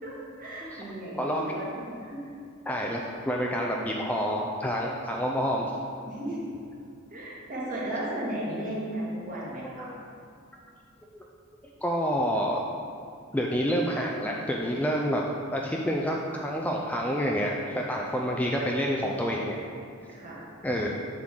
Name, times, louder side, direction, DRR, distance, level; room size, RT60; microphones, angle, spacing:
voice 1, 0.0-2.3 6.1-6.4 7.1-9.9 18.1-18.3 20.1-20.4 20.8-20.9, right 1 dB, 40° right, -6 dB, 1.9 m, -35 dB
voice 2, 2.7-5.8 9.8-10.0 11.8-12.6 13.3-15.2 15.5-16.2 16.4-19.6 20.6-20.9, equal, 5° left, -1 dB, 0.4 m, -28 dB
7.4 x 3.7 x 6.2 m, 2.4 s
head